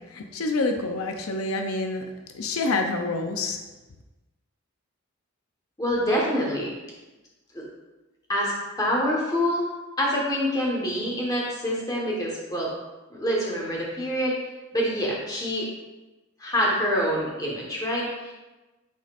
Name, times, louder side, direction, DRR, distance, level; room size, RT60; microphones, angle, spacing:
voice 1, 0.1-2.0 2.3-3.6, left 3 dB, 85° left, 4 dB, 0.6 m, -27 dB
voice 2, 5.8-6.7 7.5-7.6 8.3-8.5 8.8-9.7 10.0-12.7 13.1-14.4 14.7-15.7 16.4-18.3, equal, 15° left, -4 dB, 1.3 m, -26 dB
9.5 x 4.2 x 2.5 m, 1.1 s
head